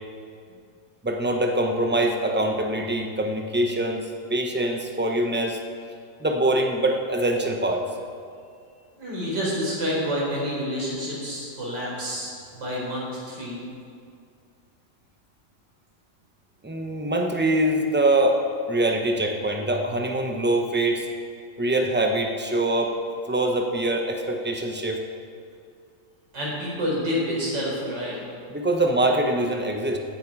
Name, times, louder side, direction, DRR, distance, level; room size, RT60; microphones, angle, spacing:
voice 1, 1.0-4.0 4.3-5.6 6.2-7.8 16.6-18.4 18.7-21.1 21.6-22.9 23.3-25.0 28.5-30.0, right 1 dB, 10° right, 2 dB, 0.5 m, -23 dB
voice 2, 9.0-13.6 26.3-28.2, equal, 60° right, -5 dB, 4.9 m, -28 dB
17.0 x 10.0 x 4.8 m, 2.3 s
omnidirectional pair, 2.2 m